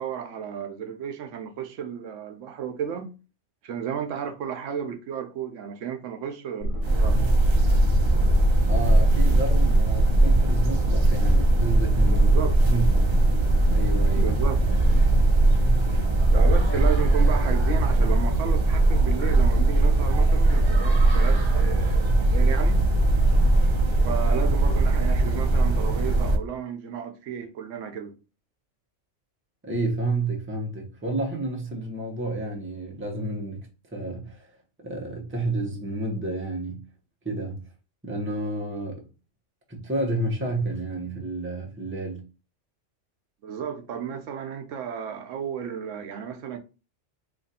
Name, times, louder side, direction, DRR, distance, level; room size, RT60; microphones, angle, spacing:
voice 1, 0.0-3.2 3.6-7.2 12.1-12.6 14.2-14.6 16.3-22.8 24.0-28.1 43.4-46.6, right 7 dB, 80° right, 1.0 m, -33 dB
sound 1, 6.6-17.0, equal, 65° left, 0.8 m, -25 dB
sound 2, 6.8-26.4, right 2 dB, 40° right, 0.4 m, -20 dB
voice 2, 8.7-12.3 12.6-13.2 13.7-14.4 29.6-33.7 33.9-34.5 34.8-36.8 37.2-37.7 38.0-39.0 39.7-42.2, right 2 dB, 10° right, 0.7 m, -30 dB
2.9 x 2.5 x 4.1 m
omnidirectional pair, 1.3 m